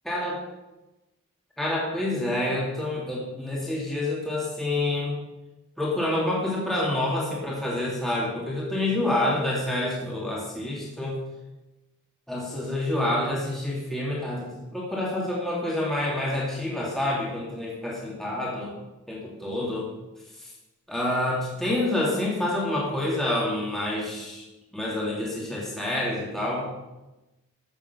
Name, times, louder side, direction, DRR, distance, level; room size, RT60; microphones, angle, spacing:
voice 1, 0.0-0.4 1.6-5.2 5.8-11.2 12.3-18.7 19.1-19.9 20.4-20.5 20.9-24.5 24.7-26.7, left 1 dB, ahead, -5 dB, 2.5 m, -28 dB
14.0 x 7.0 x 7.0 m, 1.0 s
head